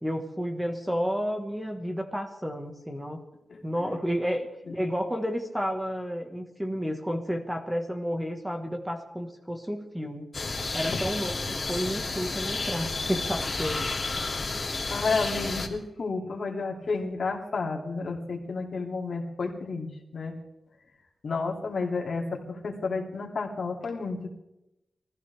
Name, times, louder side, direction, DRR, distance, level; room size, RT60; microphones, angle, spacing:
voice 1, 0.0-3.2 3.6-4.5 4.7-10.3 10.7-13.8, equal, 5° right, 3 dB, 1.6 m, -31 dB
voice 2, 3.5-4.0 4.7-4.8 10.9-11.0 14.2-14.3 14.9-20.4 21.2-24.3, left 4 dB, 50° left, 0 dB, 3.0 m, -31 dB
sound 1, 10.3-15.7, left 3 dB, 30° left, 2.8 m, -31 dB
24.0 x 15.0 x 3.6 m, 0.90 s
wide cardioid pair, 160°, 0 cm